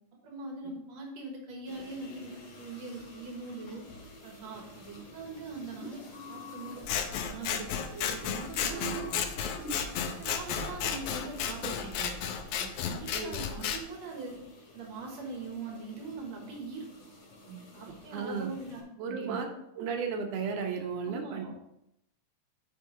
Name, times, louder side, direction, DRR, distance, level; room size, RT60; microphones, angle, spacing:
voice 1, 0.2-3.8 4.2-6.0 6.3-6.8 7.1-9.3 10.0-12.2 12.6-14.4 14.7-16.9 17.5-19.4 21.0-21.5, right 3 dB, 65° right, 1 dB, 2.3 m, -42 dB
sound 1, 1.7-18.8, right 1 dB, 75° left, 3.6 m, -48 dB
Scissors, 6.8-13.8, left 8 dB, 90° left, 1.3 m, -33 dB
voice 2, 18.1-18.5 19.0-19.5 19.8-21.5, right 5 dB, 85° right, 4 dB, 2.5 m, -34 dB
8.5 x 5.4 x 3.7 m, 0.81 s
omnidirectional pair, 3.5 m